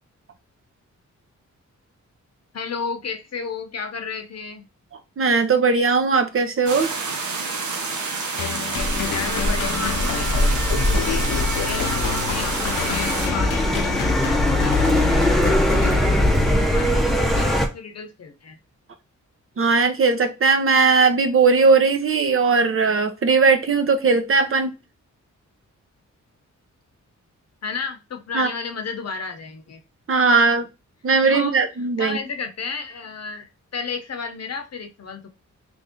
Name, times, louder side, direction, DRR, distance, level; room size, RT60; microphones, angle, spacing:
voice 1, 2.5-4.6 9.1-11.3 11.6-18.6 27.6-29.8 31.2-31.6 32.0-35.3, left 5 dB, 55° left, 0.8 m, -33 dB
voice 2, 5.2-6.9 19.6-24.7 28.3-28.5 30.1-30.7 31.0-32.2, right 4 dB, 45° right, 0.7 m, -18 dB
sound 1, 6.7-13.3, right 4 dB, 70° right, 0.8 m, -28 dB
sound 2, 8.4-16.7, left 8 dB, 85° left, 0.7 m, -29 dB
sound 3, 8.8-17.7, left 1 dB, ahead, 0.7 m, -21 dB
3.1 x 2.6 x 3.7 m
wide cardioid pair, 100°, 30 cm